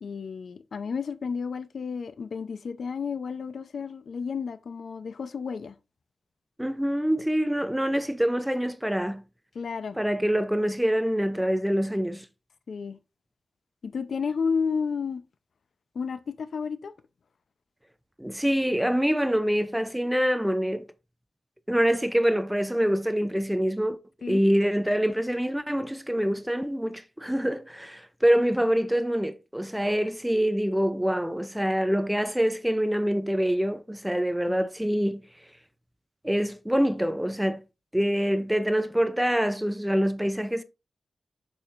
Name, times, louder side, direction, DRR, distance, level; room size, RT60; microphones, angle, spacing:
voice 1, 0.0-5.7 9.5-10.0 12.7-13.0 13.8-15.2 15.9-16.9 24.2-24.4 34.5-34.7, left 5 dB, 70° left, 0.6 m, -32 dB
voice 2, 6.6-9.2 10.0-12.3 18.2-20.8 21.7-24.0 24.3-35.2 36.2-37.6 37.9-40.6, equal, 5° right, 0.5 m, -25 dB
7.0 x 6.3 x 2.5 m
wide cardioid pair, 110°, 0 cm